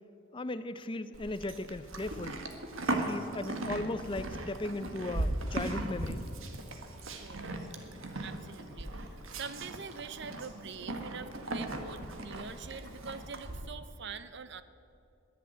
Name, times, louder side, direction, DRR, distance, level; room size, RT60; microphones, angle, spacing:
voice 1, 0.3-2.4 2.9-6.2, left 2 dB, 25° left, 13 dB, 0.5 m, -37 dB
Livestock farm animals working animals, 1.1-13.6, right 2 dB, 70° right, 1.5 m, -38 dB
voice 2, 6.9-7.6 8.2-14.6, right 5 dB, 55° right, 13 dB, 0.7 m, -45 dB
21.0 x 7.2 x 9.2 m, 2.6 s
head